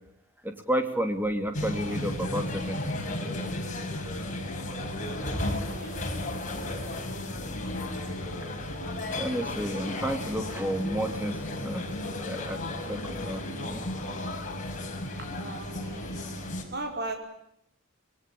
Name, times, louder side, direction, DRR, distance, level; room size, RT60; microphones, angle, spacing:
voice 1, 0.4-3.0 9.2-11.9 12.3-12.6 12.9-13.8, equal, 10° right, 6 dB, 3.0 m, -31 dB
sound 1, 1.5-16.6, left 1 dB, 40° left, 5.7 m, -34 dB
voice 2, 5.7-6.1 15.2-16.4 16.7-17.2, right 2 dB, 55° right, 3 dB, 5.1 m, -38 dB
26.5 x 22.0 x 8.7 m, 0.77 s
head